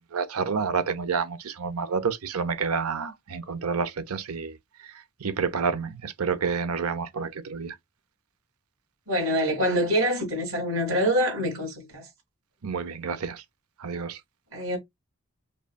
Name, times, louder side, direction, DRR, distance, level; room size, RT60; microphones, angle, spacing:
voice 1, 0.1-4.6 4.8-4.9 5.2-7.8 12.6-13.4 13.8-14.2, right 5 dB, 90° right, 0.7 m, -29 dB
voice 2, 9.1-12.1 14.5-14.8, equal, 60° right, 2.4 m, -25 dB
5.3 x 2.3 x 2.2 m
head